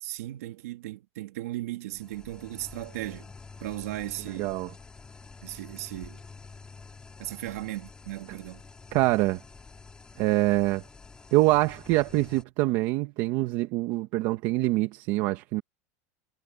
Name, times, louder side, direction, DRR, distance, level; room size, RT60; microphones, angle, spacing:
voice 1, 0.0-3.3 3.6-4.6 5.4-6.2 7.2-8.6, right 16 dB, 85° right, 2.8 m, -36 dB
sound 1, 1.9-12.4, left 4 dB, 10° left, 2.1 m, -48 dB
voice 2, 4.4-4.7 8.9-9.4 10.2-10.8 11.3-15.6, right 18 dB, 45° right, 1.5 m, -25 dB
supercardioid pair, 165°, 8 cm